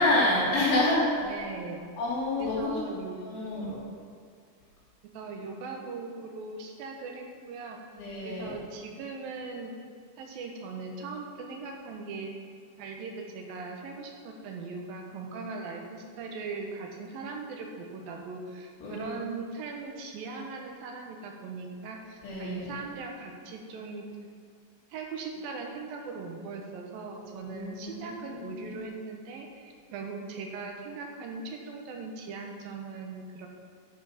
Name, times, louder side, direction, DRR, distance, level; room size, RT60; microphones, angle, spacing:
voice 1, 0.0-1.1 2.0-2.7 3.2-3.8 8.0-8.5 18.8-19.2 22.2-22.7 27.3-28.8, left 2 dB, 80° left, -7 dB, 4.4 m, -28 dB
voice 2, 1.2-1.8 2.4-3.7 5.1-7.8 8.2-9.7 10.2-12.3 12.8-24.1 24.9-33.5, right 4 dB, 80° right, 1 dB, 2.9 m, -39 dB
10.5 x 7.8 x 5.8 m, 2.2 s
omnidirectional pair, 4.1 m